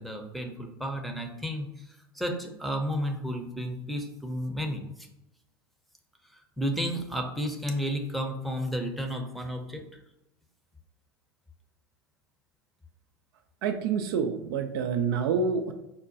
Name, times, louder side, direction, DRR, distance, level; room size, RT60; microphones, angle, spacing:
voice 1, 0.0-1.7 2.1-4.9 6.6-9.8, equal, ahead, 2 dB, 0.6 m, -32 dB
voice 2, 13.6-15.7, right 5 dB, 60° right, 7 dB, 0.4 m, -27 dB
5.3 x 2.2 x 2.6 m, 0.91 s
hypercardioid pair, 80°, 13 cm